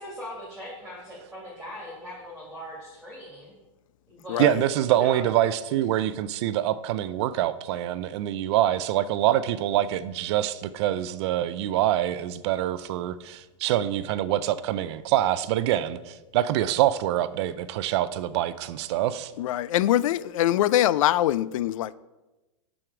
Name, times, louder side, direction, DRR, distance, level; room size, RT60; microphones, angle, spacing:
voice 1, 0.0-3.5 4.1-4.5 4.9-5.2, equal, 5° right, 2.2 m, -40 dB
voice 2, 4.4-19.3, right 12 dB, 55° right, 0.4 m, -25 dB
voice 3, 19.4-21.9, left 13 dB, 75° left, 0.4 m, -23 dB
7.7 x 6.3 x 4.8 m
supercardioid pair, 140°, 17 cm